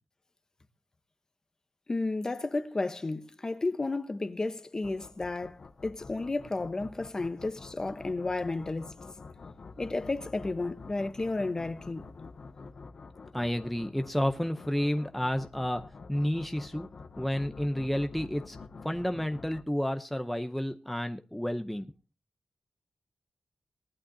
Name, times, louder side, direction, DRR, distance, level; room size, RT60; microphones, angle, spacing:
voice 1, 1.9-9.0 9.8-12.0, left 3 dB, 30° left, 1.0 m, -32 dB
sound 1, 4.8-19.6, left 4 dB, 55° left, 0.9 m, -48 dB
voice 2, 13.3-16.9 17.2-18.6 18.8-21.9, equal, 5° left, 0.7 m, -31 dB
19.5 x 11.5 x 2.7 m
wide cardioid pair, 120°, 2 cm